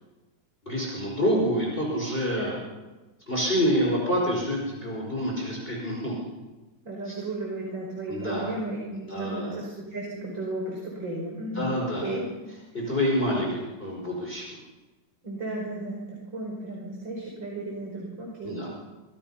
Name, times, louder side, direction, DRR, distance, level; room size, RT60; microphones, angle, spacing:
voice 1, 0.7-2.6 3.3-6.2 7.1-7.2 8.1-8.5 9.1-9.5 11.6-12.2 12.7-14.4 18.4-18.7, equal, 30° left, -2 dB, 5.6 m, -27 dB
voice 2, 6.8-12.9 15.2-18.7, right 2 dB, 85° right, -1 dB, 5.8 m, -34 dB
26.0 x 26.0 x 5.8 m, 1.2 s
omnidirectional pair, 2.0 m